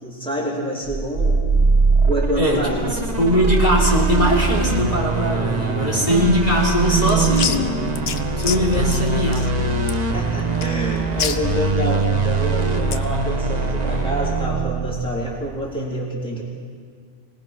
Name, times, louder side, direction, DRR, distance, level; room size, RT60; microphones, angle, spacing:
voice 1, 0.0-1.4 2.1-3.0 5.7-6.2 9.9-16.4, equal, 5° left, -4 dB, 3.7 m, -27 dB
sound 1, 0.9-15.4, right 3 dB, 35° right, 1.3 m, -22 dB
voice 2, 2.4-7.7 8.4-9.5, equal, 35° left, -4 dB, 3.8 m, -20 dB
sound 2, 6.6-13.1, left 6 dB, 60° left, 1.1 m, -30 dB
25.0 x 19.5 x 6.0 m, 2.1 s
omnidirectional pair, 1.2 m